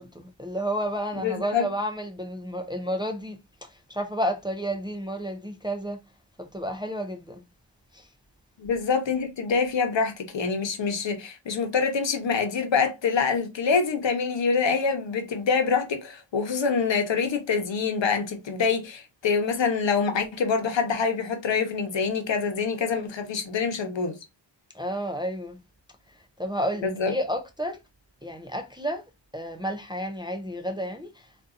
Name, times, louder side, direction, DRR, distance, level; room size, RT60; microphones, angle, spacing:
voice 1, 0.0-3.4 3.9-6.0 6.4-7.4 7.9-8.1 24.7-25.6 26.4-27.8 28.2-29.0 29.3-31.3, equal, 10° right, 0.4 m, -31 dB
voice 2, 1.2-1.7 8.6-24.2 26.8-27.1, left 5 dB, 75° left, 0.9 m, -25 dB
3.7 x 2.6 x 2.4 m
wide cardioid pair, 140°, 45 cm